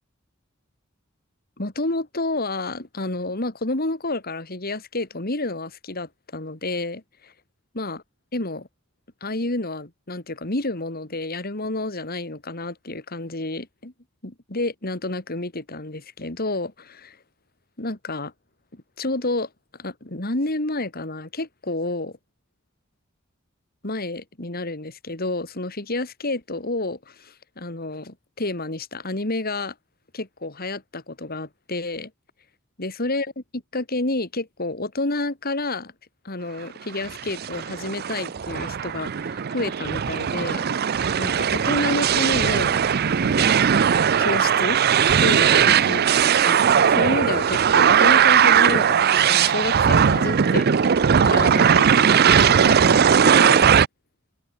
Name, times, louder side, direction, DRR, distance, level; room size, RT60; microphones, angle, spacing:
voice 1, 1.6-7.3 7.7-8.0 8.3-8.7 9.2-13.9 14.2-17.2 17.8-18.3 18.7-22.2 23.8-29.7 30.1-32.1 32.8-35.9 36.2-40.6 41.2-42.8 43.2-43.6 44.2-44.8 45.2-53.7, left 2 dB, 50° left, 3.0 m, -29 dB
sound 1, 37.0-53.9, right 7 dB, 50° right, 0.5 m, -18 dB
open air
head